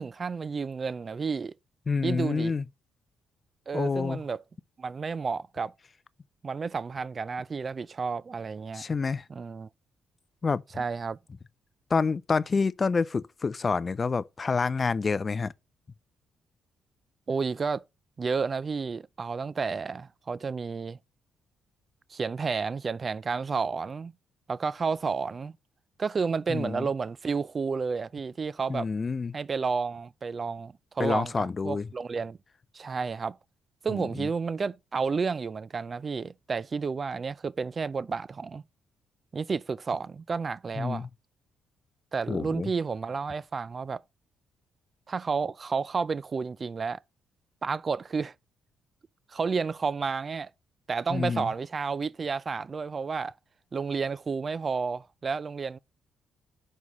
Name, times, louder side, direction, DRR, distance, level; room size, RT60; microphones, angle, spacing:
voice 1, 0.0-1.5 2.0-2.5 3.7-4.4 4.8-5.7 6.4-8.8 9.3-9.7 10.7-11.2 17.3-17.8 18.2-21.0 22.1-24.1 24.5-25.5 26.0-28.9 29.3-32.4 32.7-33.4 33.8-38.6 39.3-41.1 42.1-44.0 45.1-47.0 47.6-48.3 49.3-50.5 50.9-53.3 53.7-55.8, right 5 dB, 35° right, 0.4 m, -31 dB
voice 2, 1.9-2.6 3.7-4.2 8.7-9.2 10.4-10.6 11.9-15.5 26.5-26.9 28.7-29.3 31.0-31.9 33.9-34.3 40.8-41.1 42.3-42.7 51.1-51.5, left 4 dB, 35° left, 0.4 m, -28 dB
5.5 x 4.6 x 6.1 m
cardioid pair, 90°, 0 cm